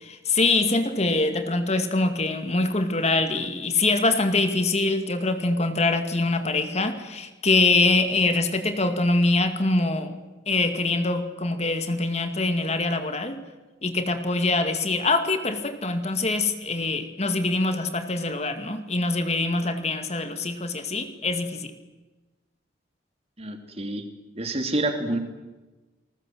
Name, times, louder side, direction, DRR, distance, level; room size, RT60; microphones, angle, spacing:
voice 1, 0.0-10.1 10.5-13.4 13.8-21.7, left 3 dB, 35° left, 8 dB, 2.1 m, -24 dB
voice 2, 23.4-24.0 24.3-25.2, right 2 dB, 35° right, 6 dB, 3.1 m, -28 dB
28.5 x 20.5 x 7.9 m, 1.2 s
head